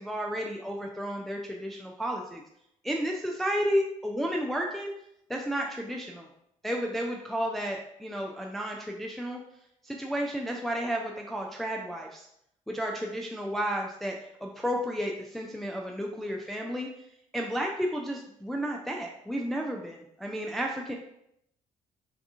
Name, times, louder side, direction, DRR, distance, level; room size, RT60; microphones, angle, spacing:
voice 1, 0.0-2.4 2.8-4.9 5.3-6.3 6.6-9.4 9.8-12.3 12.7-14.2 14.4-16.9 17.3-20.9, equal, ahead, 0 dB, 0.4 m, -32 dB
3.4 x 2.3 x 2.5 m, 0.77 s
figure-of-eight pair, 40°, 17 cm